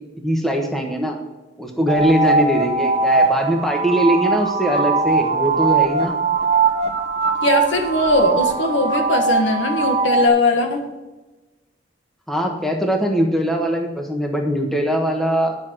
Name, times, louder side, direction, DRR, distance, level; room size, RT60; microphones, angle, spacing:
voice 1, 0.2-1.2 1.6-6.2 12.3-15.5, equal, ahead, 1 dB, 1.2 m, -21 dB
sound 1, 1.9-10.3, right 4 dB, 35° right, 1.0 m, -20 dB
voice 2, 7.4-10.8, left 2 dB, 80° left, 4 dB, 1.6 m, -19 dB
10.0 x 6.2 x 6.1 m, 1.1 s
head